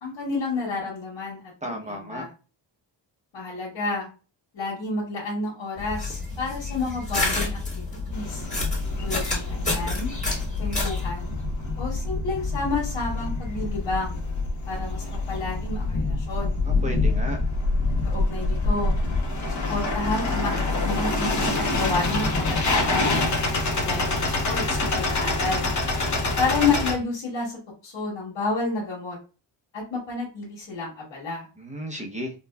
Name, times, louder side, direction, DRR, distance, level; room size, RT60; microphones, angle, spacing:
voice 1, 0.0-1.4 1.6-2.3 3.3-4.1 4.5-8.4 9.0-10.1 10.6-11.3 11.8-14.2 14.7-16.6 18.0-18.9 19.7-20.6 20.8-23.2 23.8-25.7 26.4-27.5 27.8-29.2 29.7-31.5, left 3 dB, 75° left, -5 dB, 1.5 m, -30 dB
voice 2, 1.6-2.3 16.6-17.4 31.6-32.3, equal, 15° right, 2 dB, 0.7 m, -33 dB
sound 1, 5.8-11.1, left 3 dB, 15° left, 1.4 m, -29 dB
sound 2, 8.1-26.9, left 2 dB, 40° left, 0.9 m, -26 dB
4.1 x 2.3 x 2.2 m, 0.34 s
wide cardioid pair, 115°, 45 cm